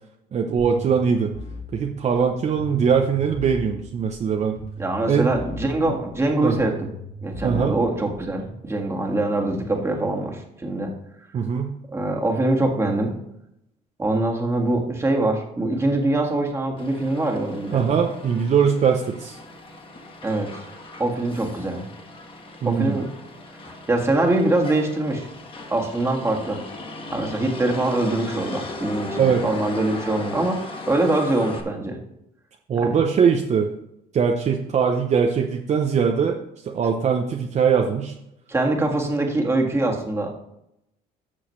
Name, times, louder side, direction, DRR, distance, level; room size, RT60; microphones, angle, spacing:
voice 1, 0.3-1.3 1.7-4.6 5.1-5.3 6.4-6.6 7.4-7.7 11.3-11.7 17.7-19.4 22.6-23.0 29.1-29.4 32.7-33.7 34.1-36.4 36.6-38.1, right 6 dB, 45° right, 2 dB, 0.8 m, -21 dB
sound 1, 0.6-8.6, equal, 60° left, 4.2 m, -38 dB
voice 2, 4.8-6.9 7.2-10.9 11.9-13.1 14.0-17.8 20.2-20.6 21.0-21.9 22.6-23.1 23.6-25.3 25.7-26.6 27.1-32.0 32.8-32.9 38.5-40.4, right 2 dB, 15° right, 1 dB, 1.9 m, -23 dB
Motor vehicle (road), 16.8-31.6, left 2 dB, 30° left, 1.5 m, -38 dB
13.5 x 6.3 x 3.2 m, 0.81 s
cardioid pair, 110°, 17 cm